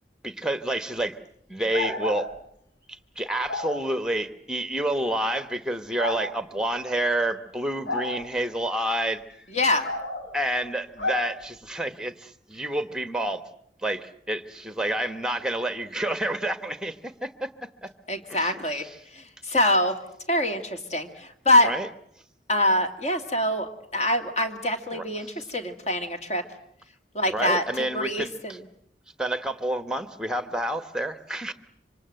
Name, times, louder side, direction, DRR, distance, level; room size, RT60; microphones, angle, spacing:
voice 1, 0.2-1.2 1.5-2.3 3.2-9.5 10.3-13.4 13.8-17.9 18.3-18.8 21.6-21.9 24.9-25.3 27.3-28.6 29.2-31.5, right 1 dB, 5° right, 12 dB, 1.2 m, -29 dB
sound 1, 1.7-2.2 3.5-3.7 5.0-5.1 6.0-6.2 7.8-8.1 9.8-10.3 11.0-11.2, left 2 dB, 85° left, 7.0 m, -30 dB
voice 2, 9.5-9.9 18.1-20.0 20.3-21.7 22.5-26.4 27.1-28.6, left 1 dB, 40° left, 6 dB, 2.5 m, -25 dB
26.0 x 25.5 x 7.8 m, 0.68 s
head